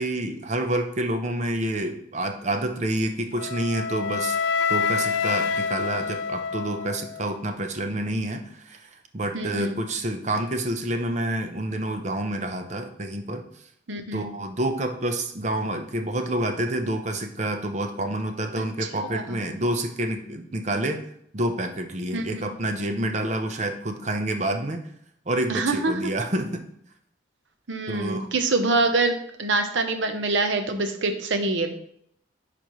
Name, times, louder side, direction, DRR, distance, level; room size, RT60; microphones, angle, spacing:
voice 1, 0.0-4.4 4.7-13.4 14.1-21.0 21.3-24.8 25.3-26.6 27.9-28.3, right 1 dB, 40° right, 5 dB, 0.7 m, -28 dB
Wind instrument woodwind instrument, 3.4-7.4, left 6 dB, 75° left, 0.3 m, -27 dB
voice 2, 9.3-9.8 13.9-14.3 18.6-18.7 19.1-19.2 22.1-22.5 25.5-25.9 27.7-31.7, right 3 dB, 85° right, 7 dB, 0.9 m, -25 dB
10.0 x 4.3 x 3.1 m, 0.70 s
head